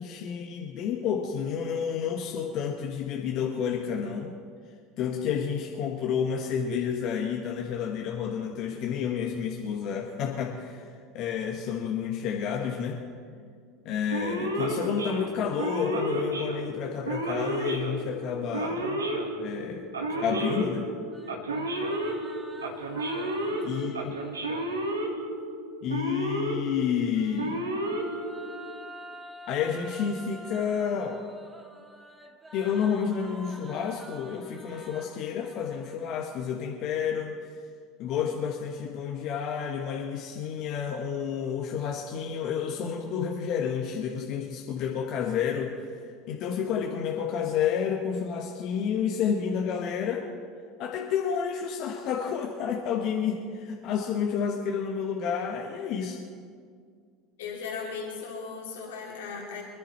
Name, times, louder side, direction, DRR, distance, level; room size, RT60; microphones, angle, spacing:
voice 1, 0.0-4.3 5.0-13.0 13.8-18.8 19.4-19.8 20.2-20.9 23.6-24.0 25.8-27.7 29.5-31.2 32.5-37.3 38.0-45.7 46.3-50.2 50.8-56.2, left 7 dB, 55° left, 0 dB, 1.5 m, -30 dB
Male speech man speaking / Siren, 14.1-28.8, right 1 dB, 90° right, 1.5 m, -32 dB
sound 1, 21.1-25.1 26.9-36.4, right 1 dB, 20° right, 2.2 m, -48 dB
voice 2, 23.4-24.2 57.4-59.6, left 5 dB, 75° left, -2 dB, 2.9 m, -38 dB
24.5 x 11.0 x 4.4 m, 2.1 s
hypercardioid pair, 75°, 0 cm